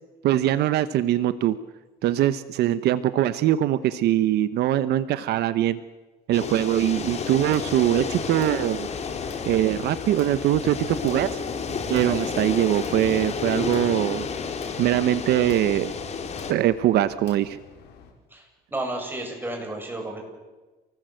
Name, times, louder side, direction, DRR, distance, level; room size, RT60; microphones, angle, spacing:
voice 1, 0.2-1.5 2.0-5.8 6.3-8.9 9.4-11.4 11.9-14.3 14.8-15.9 16.5-17.6, right 12 dB, 75° right, 13 dB, 1.0 m, -22 dB
sound 1, 6.3-16.5, left 5 dB, 40° left, 3.1 m, -31 dB
sound 2, 6.9-18.1, left 6 dB, 80° left, 4.9 m, -46 dB
voice 2, 18.3-20.2, right 1 dB, 10° right, 2 dB, 7.9 m, -32 dB
28.5 x 19.5 x 7.9 m, 1.2 s
cardioid pair, 110°, 17 cm